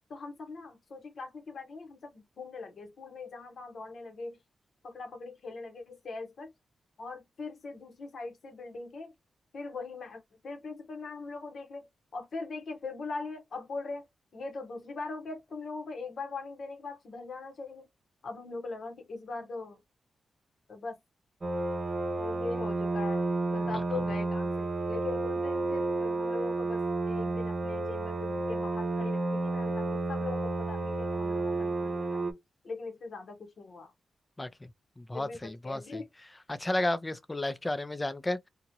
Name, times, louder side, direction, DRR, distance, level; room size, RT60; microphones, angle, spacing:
voice 1, 0.1-4.4 4.8-6.5 7.0-9.1 9.5-11.9 12.1-14.1 14.3-17.9 18.2-19.8 20.7-21.0 22.2-32.2 32.6-33.9 35.1-36.1, left 3 dB, 65° left, 1.1 m, -41 dB
sound 1, 21.4-32.3, right 2 dB, 40° right, 0.7 m, -31 dB
voice 2, 35.0-36.0 36.5-38.5, left 1 dB, 20° left, 0.5 m, -32 dB
3.0 x 2.4 x 2.8 m
cardioid pair, 55°, 0 cm